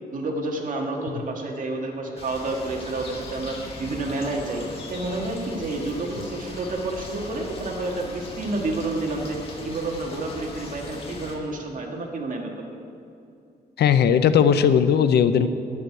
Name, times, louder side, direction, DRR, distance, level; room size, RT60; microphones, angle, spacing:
voice 1, 0.1-4.6 4.9-9.4 9.6-12.5, right 2 dB, 50° right, 0 dB, 1.7 m, -29 dB
sound 1, 2.2-11.4, left 2 dB, 35° left, 1.8 m, -39 dB
voice 2, 13.8-15.5, left 8 dB, 75° left, 11 dB, 0.6 m, -18 dB
11.0 x 6.3 x 8.9 m, 2.6 s
cardioid pair, 125°, 17 cm